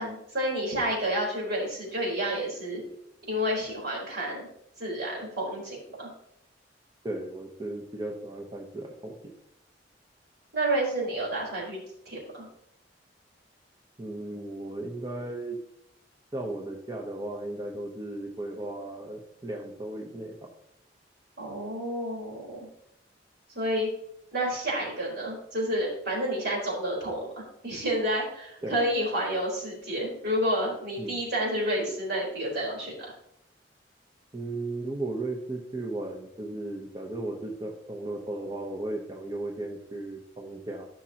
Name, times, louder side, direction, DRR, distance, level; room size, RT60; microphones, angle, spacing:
voice 1, 0.0-2.8 3.3-4.5 4.8-6.1 10.5-11.8 12.1-12.5 21.4-22.7 23.5-23.9 24.3-33.1, right 1 dB, 60° right, -4 dB, 4.1 m, -30 dB
voice 2, 7.0-9.2 14.0-15.6 16.3-20.3 28.6-28.8 31.0-31.2 34.3-40.9, right 2 dB, 25° right, 0 dB, 0.9 m, -35 dB
14.0 x 6.3 x 2.9 m, 0.78 s
head